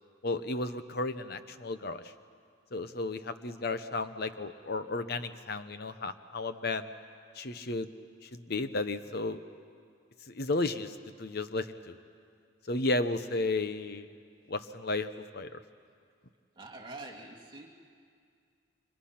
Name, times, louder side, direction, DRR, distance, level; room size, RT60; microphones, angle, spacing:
voice 1, 0.2-2.0 2.7-6.9 7.4-7.9 8.2-9.4 10.3-12.0 12.7-14.1 14.5-15.5, left 2 dB, 50° left, 11 dB, 0.9 m, -33 dB
voice 2, 16.6-17.7, right 2 dB, 20° right, -1 dB, 2.2 m, -45 dB
30.0 x 25.5 x 5.9 m, 2.2 s
head